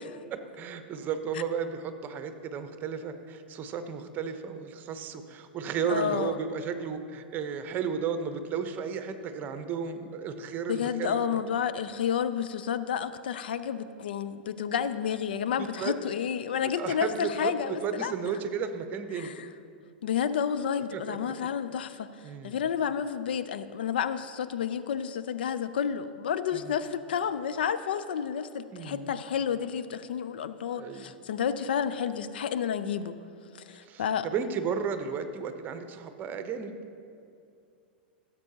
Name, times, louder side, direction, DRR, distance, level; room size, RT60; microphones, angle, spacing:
voice 1, 0.3-11.4 15.6-15.9 16.6-19.3 20.9-21.3 22.2-22.6 26.5-26.7 28.7-29.2 30.8-31.1 33.8-36.7, right 6 dB, 30° right, 8 dB, 0.9 m, -34 dB
voice 2, 5.9-6.4 10.7-18.1 19.1-19.5 20.0-22.1 22.4-33.2 33.5-34.3, left 8 dB, 70° left, 12 dB, 0.4 m, -30 dB
16.5 x 7.4 x 2.8 m, 2.5 s
hypercardioid pair, 100°, 6 cm